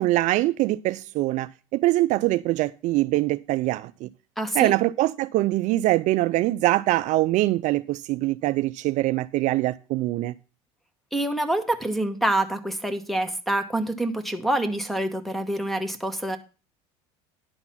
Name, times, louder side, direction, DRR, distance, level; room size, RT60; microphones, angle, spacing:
voice 1, 0.0-4.1 4.5-10.3, right 17 dB, 55° right, 0.4 m, -23 dB
voice 2, 4.4-4.7 11.1-16.4, right 1 dB, ahead, 1.1 m, -26 dB
10.5 x 4.0 x 7.3 m
supercardioid pair, 120°, 15 cm